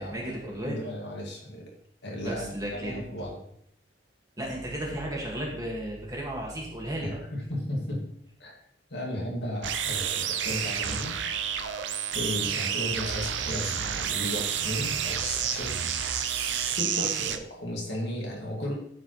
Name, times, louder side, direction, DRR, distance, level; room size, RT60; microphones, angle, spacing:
voice 1, 0.0-0.8 2.2-3.0 4.4-7.2 16.9-17.1, right 1 dB, 20° right, -2 dB, 1.7 m, -34 dB
voice 2, 0.6-1.7 2.0-3.4 7.0-8.0 8.4-8.5 8.9-11.2 12.1-15.7 16.6-18.7, left 1 dB, 65° left, -2 dB, 2.1 m, -35 dB
sound 1, 9.6-17.4, right 8 dB, 85° right, 0.6 m, -30 dB
12.0 x 4.8 x 3.1 m, 0.70 s
head